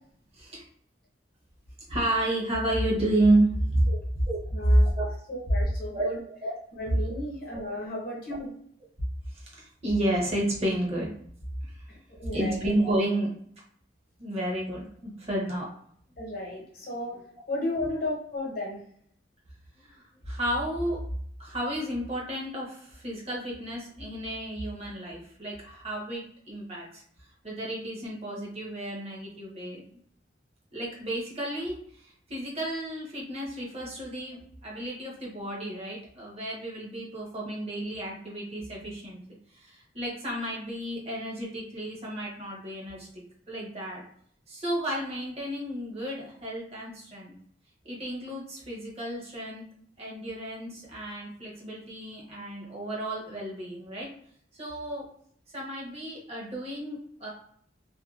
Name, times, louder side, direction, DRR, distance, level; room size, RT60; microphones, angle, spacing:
voice 1, 1.9-3.9 4.3-4.4 4.6-5.1 5.9-6.6 9.3-11.1 11.6-11.8 12.3-13.3 14.2-15.6 19.8-21.0 21.4-27.0 27.4-29.8 30.7-39.2 39.5-44.0 44.5-47.3 47.8-49.6 50.0-54.1 54.6-55.1 55.5-57.3, right 1 dB, 35° right, -4 dB, 0.8 m, -31 dB
voice 2, 4.5-4.9 5.3-6.2 6.7-8.5 11.9-12.6 16.2-18.8, left 1 dB, 55° left, -3 dB, 0.9 m, -34 dB
2.6 x 2.2 x 2.4 m, 0.63 s
head